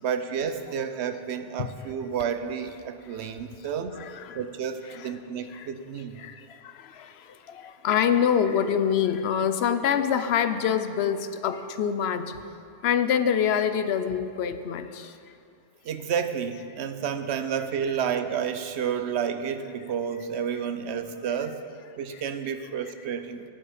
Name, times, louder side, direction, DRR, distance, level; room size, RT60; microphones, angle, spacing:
voice 1, 0.0-3.9 4.3-6.2 15.8-21.6 22.0-23.4, right 7 dB, 85° right, 9 dB, 0.9 m, -30 dB
voice 2, 3.9-4.4 4.9-5.1 5.5-5.7 6.2-6.3 7.5-12.3 12.8-15.1, left 8 dB, 75° left, 11 dB, 0.9 m, -25 dB
11.0 x 9.5 x 5.0 m, 2.4 s
omnidirectional pair, 1.1 m